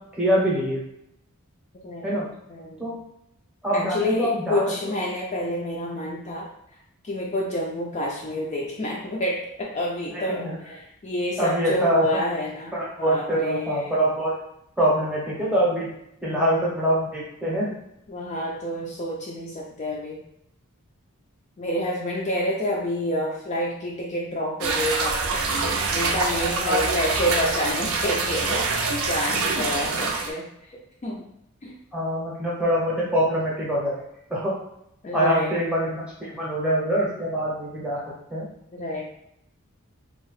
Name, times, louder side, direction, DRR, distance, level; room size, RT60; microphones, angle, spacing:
voice 1, 0.2-0.8 2.0-2.3 2.8-3.0 3.6-4.6 10.3-10.6 11.4-12.1 12.7-14.3 14.8-15.9 16.2-17.7 26.6-27.0 30.0-30.1 31.9-34.5 35.1-38.0 38.3-38.5, right 1 dB, 5° right, -6 dB, 0.7 m, -24 dB
voice 2, 1.8-2.8 3.7-6.5 7.0-12.7 13.0-14.0 16.2-16.7 18.1-20.2 21.6-25.4 25.9-31.2 31.6-31.7 35.0-35.6 38.7-39.0, left 1 dB, 30° left, -3 dB, 0.3 m, -29 dB
sound 1, 24.6-30.3, right 4 dB, 65° right, 0.4 m, -25 dB
2.7 x 2.0 x 3.1 m, 0.79 s
head